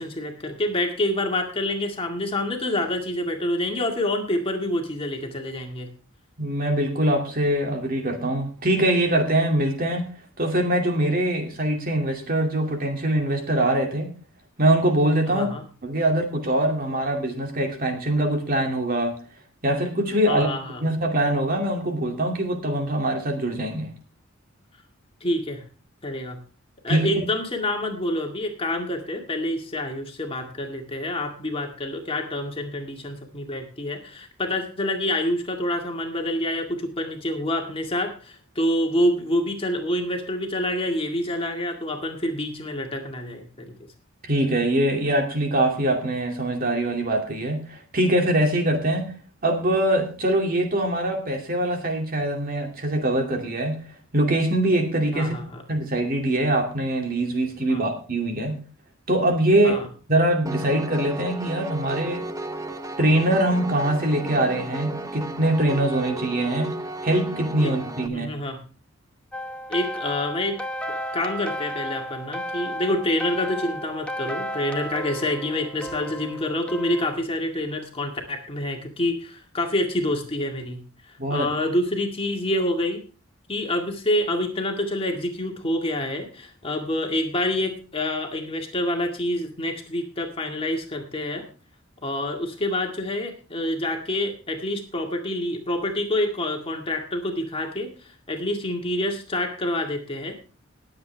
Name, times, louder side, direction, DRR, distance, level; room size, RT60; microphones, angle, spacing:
voice 1, 0.0-5.9 15.3-15.6 20.3-20.8 25.2-25.6 26.0-26.4 26.8-43.4 55.1-55.6 57.7-57.8 59.6-59.9 67.6-67.7 68.0-68.6 69.7-70.6 70.9-80.8 81.3-83.0 83.5-91.4 92.0-97.9 98.3-100.3, left 1 dB, 30° left, 2 dB, 2.1 m, -27 dB
voice 2, 6.4-10.0 10.4-14.1 14.6-15.5 15.8-19.1 19.6-20.5 20.8-23.9 26.9-27.2 44.2-49.1 49.4-53.8 54.1-55.4 55.7-58.5 59.1-59.8 60.1-62.2 63.0-66.7 67.0-68.3 81.2-81.5, right 1 dB, 45° right, 3 dB, 2.5 m, -23 dB
Piano, 60.5-68.1, right 2 dB, 15° right, 0.9 m, -34 dB
sound 1, 69.3-77.1, equal, 5° left, 1.0 m, -33 dB
20.0 x 8.0 x 3.4 m, 0.38 s
head